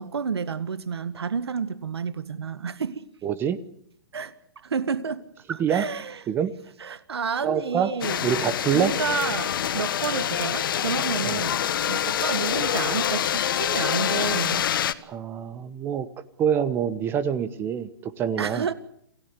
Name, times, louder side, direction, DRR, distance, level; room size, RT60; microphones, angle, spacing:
voice 1, 0.0-3.0 4.1-4.3 4.6-5.2 5.5-6.2 6.8-8.2 8.7-11.6 11.9-14.7 18.4-18.7, right 6 dB, 85° right, 1.7 m, -30 dB
voice 2, 3.2-3.6 5.6-5.9 6.3-6.5 7.4-7.9 8.2-8.9 11.2-11.4 15.1-16.1 16.4-18.7, right 8 dB, 15° right, 1.0 m, -25 dB
sound 1, 8.0-14.9, left 10 dB, 60° left, 1.5 m, -26 dB
28.0 x 17.5 x 8.3 m
hypercardioid pair, 150°, 13 cm